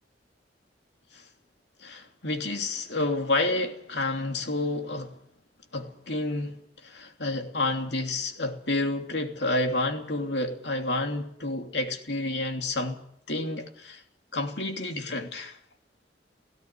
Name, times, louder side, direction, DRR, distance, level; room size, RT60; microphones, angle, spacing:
voice 1, 1.8-5.2 5.7-13.0 13.3-14.0 14.3-15.6, left 2 dB, 70° left, 3.0 m, -29 dB
17.5 x 16.5 x 9.8 m
head